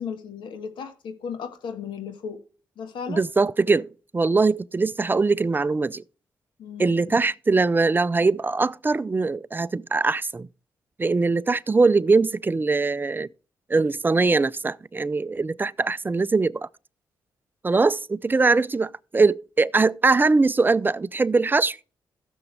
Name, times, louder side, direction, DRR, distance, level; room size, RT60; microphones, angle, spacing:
voice 1, 0.0-2.4 2.8-3.2 6.6-7.2, left 7 dB, 80° left, 1.6 m, -35 dB
voice 2, 3.1-6.0 6.8-10.5 11.0-13.3 13.7-16.7 17.6-21.8, right 3 dB, 25° right, 0.5 m, -22 dB
14.5 x 7.1 x 3.3 m
cardioid pair, 65°, 8 cm